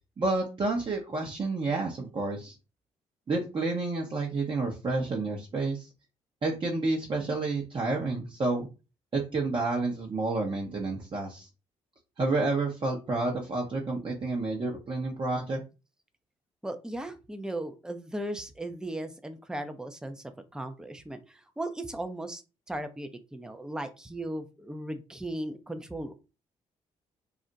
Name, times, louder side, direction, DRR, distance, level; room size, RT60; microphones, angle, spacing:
voice 1, 0.2-2.5 3.3-5.9 6.4-8.7 9.1-11.5 12.2-15.6, right 3 dB, 40° right, -1 dB, 0.8 m, -30 dB
voice 2, 16.6-20.2 20.5-22.4 22.7-26.1, right 1 dB, 5° right, 8 dB, 0.5 m, -37 dB
2.4 x 2.1 x 3.9 m, 0.29 s
supercardioid pair, 60°, 13 cm